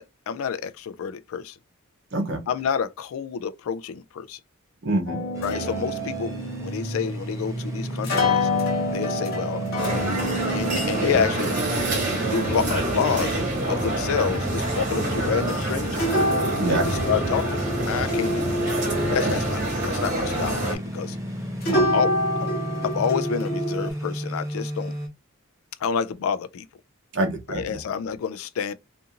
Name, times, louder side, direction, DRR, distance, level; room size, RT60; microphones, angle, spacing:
voice 1, 0.0-1.5 2.5-4.4 5.4-6.3 6.6-8.5 8.9-10.1 10.4-11.6 12.1-13.3 13.7-16.1 16.7-17.5 17.9-18.6 19.1-21.2 21.7-22.1 22.8-24.9 25.8-26.6 27.5-28.7, left 7 dB, 75° left, 0.3 m, -28 dB
voice 2, 4.8-5.2 16.6-17.0 19.2-19.3 21.7-21.9 27.1-27.8, right 1 dB, 55° right, 0.7 m, -26 dB
sound 1, 5.1-21.3 21.6-23.9, left 1 dB, 45° left, 0.9 m, -29 dB
sound 2, 5.3-25.1, right 1 dB, 15° right, 0.6 m, -34 dB
sound 3, 9.8-20.8, right 1 dB, 35° right, 1.1 m, -27 dB
2.6 x 2.4 x 2.7 m
head